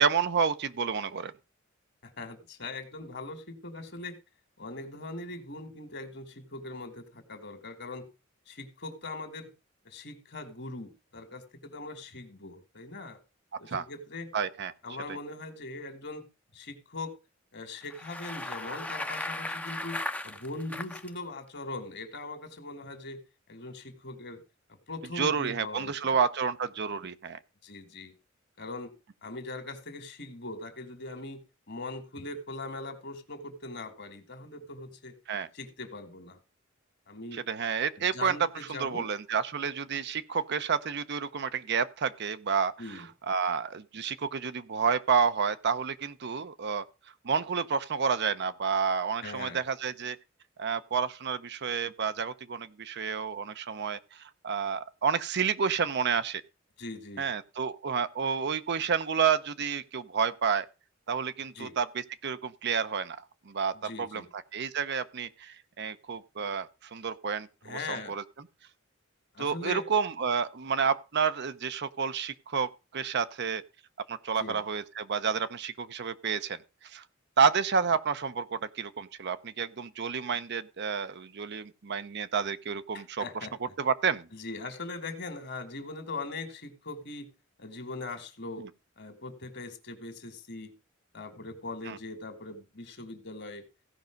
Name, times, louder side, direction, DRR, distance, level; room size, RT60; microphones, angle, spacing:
voice 1, 0.0-1.3 13.7-13.8 14.3-14.7 25.1-27.4 35.3-35.5 37.3-38.4 38.7-46.8 47.2-50.2 50.6-56.4 57.2-60.7 61.1-63.2 63.5-68.2 69.4-73.6 74.1-76.6 76.8-77.0 77.4-83.2 83.8-84.3 88.6-88.7 91.8-92.0, right 6 dB, 60° right, 0.7 m, -30 dB
voice 2, 2.0-4.1 4.6-8.1 8.5-9.5 9.8-13.2 13.6-14.3 14.8-16.2 16.5-17.1 17.5-23.2 23.5-24.4 24.7-26.2 27.6-28.1 28.6-28.9 29.2-31.4 31.7-35.1 35.5-36.4 37.1-37.4 38.0-39.1 42.8-43.1 49.2-49.6 56.8-57.3 61.5-61.7 63.7-64.3 67.6-68.1 69.3-69.8 74.4-74.6 82.9-83.7 84.3-87.3 87.6-88.7 89.0-90.7 91.1-93.6, left 2 dB, 55° left, 2.1 m, -41 dB
Bicycle, 17.8-21.1, left 2 dB, 5° left, 0.7 m, -36 dB
15.5 x 5.4 x 5.2 m
head